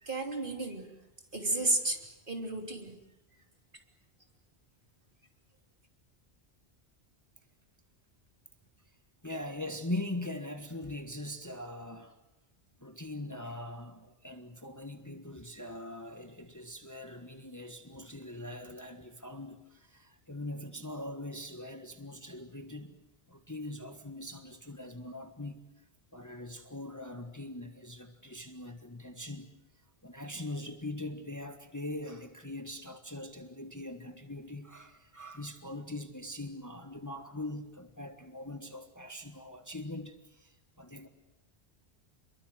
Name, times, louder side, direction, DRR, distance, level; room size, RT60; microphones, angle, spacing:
voice 1, 0.0-0.9 1.3-2.0 2.3-3.0, right 2 dB, 50° right, 3.5 m, -32 dB
voice 2, 9.2-12.2 12.8-23.0 23.3-25.6 26.1-29.5 30.0-41.1, left 1 dB, 15° left, 1.5 m, -42 dB
28.0 x 23.0 x 7.8 m
omnidirectional pair, 1.1 m